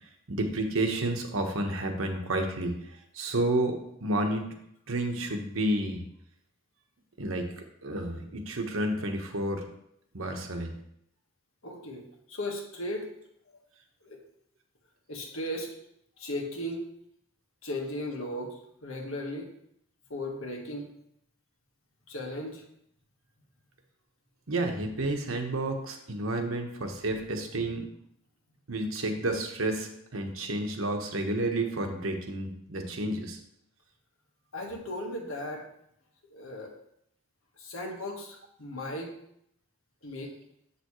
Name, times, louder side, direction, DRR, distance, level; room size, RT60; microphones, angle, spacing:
voice 1, 0.3-2.8 3.1-4.5 4.9-6.0 7.2-9.6 10.1-10.7 24.5-27.9 28.7-33.4, right 1 dB, 75° right, 4 dB, 1.2 m, -30 dB
voice 2, 11.6-13.0 14.0-14.2 15.1-15.7 16.2-16.9 17.6-19.5 20.1-20.9 22.1-22.6 34.5-35.6 36.3-36.7 37.6-39.1 40.0-40.3, left 1 dB, 90° left, 1 dB, 1.6 m, -36 dB
7.8 x 6.9 x 3.2 m, 0.74 s
head